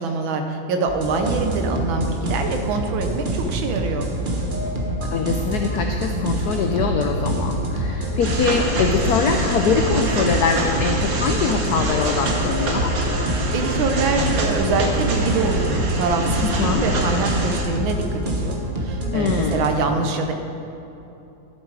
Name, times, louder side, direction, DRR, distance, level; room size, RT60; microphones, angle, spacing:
voice 1, 0.0-4.1 13.5-20.3, right 3 dB, 75° right, 5 dB, 1.6 m, -24 dB
sound 1, 0.9-19.8, right 1 dB, 30° right, 1.0 m, -26 dB
voice 2, 5.0-12.9 16.4-16.8 19.1-19.7, left 5 dB, 85° left, 4 dB, 0.8 m, -23 dB
sound 2, 8.2-17.6, right 2 dB, 50° right, 1.3 m, -25 dB
12.0 x 7.4 x 4.7 m, 2.9 s
omnidirectional pair, 2.3 m